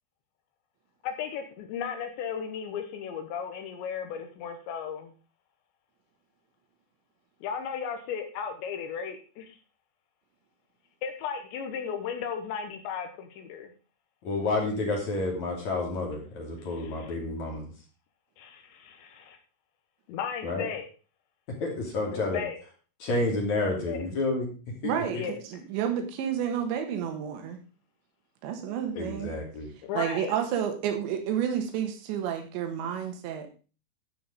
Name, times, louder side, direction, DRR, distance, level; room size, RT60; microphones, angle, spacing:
voice 1, 1.0-5.1 7.4-9.6 11.0-13.7 16.6-17.2 18.4-19.4 20.1-20.9 22.1-22.6 23.6-24.1 25.1-25.4 29.8-30.4, left 7 dB, 80° left, 6 dB, 3.3 m, -35 dB
voice 2, 14.2-17.7 20.4-20.7 21.6-22.4 23.0-25.2 28.9-29.7, left 2 dB, 45° left, -1 dB, 3.7 m, -30 dB
voice 3, 24.8-27.6 28.4-29.3 30.0-33.5, right 9 dB, 80° right, 5 dB, 3.7 m, -30 dB
12.5 x 5.7 x 5.1 m, 0.36 s
omnidirectional pair, 5.2 m